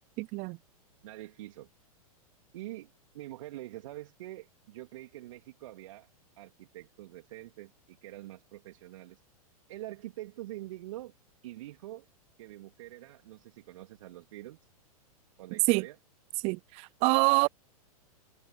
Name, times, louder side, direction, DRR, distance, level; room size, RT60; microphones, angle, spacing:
voice 1, 0.2-0.6 15.7-15.8 16.4-17.5, right 27 dB, 35° right, 0.5 m, -26 dB
voice 2, 1.0-1.7 2.5-6.1 6.4-9.2 9.7-11.1 11.4-12.0 12.4-14.6 15.4-16.0, right 16 dB, 55° right, 2.9 m, -45 dB
figure-of-eight pair, 100°, 19 cm